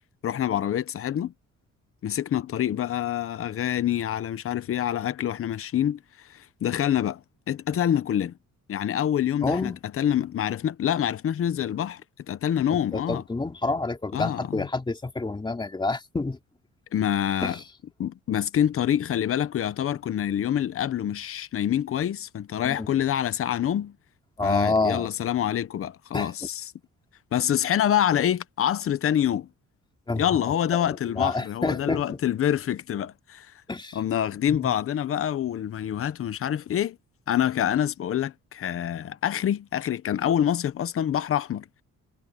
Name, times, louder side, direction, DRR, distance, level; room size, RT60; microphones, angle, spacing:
voice 1, 0.2-1.3 2.0-6.0 6.3-8.3 8.7-12.0 12.3-13.2 14.1-14.7 16.9-17.6 18.0-23.9 24.4-26.6 27.3-29.5 30.2-33.5 33.9-37.0 37.3-41.6, left 10 dB, 45° left, 0.9 m, -26 dB
voice 2, 9.4-9.8 12.9-16.4 17.4-17.6 22.6-22.9 24.4-25.1 26.1-26.3 30.1-30.3 30.7-30.9 31.2-32.2 33.7-34.0 34.5-34.7, left 3 dB, 15° left, 2.9 m, -28 dB
cardioid pair, 165°, 31 cm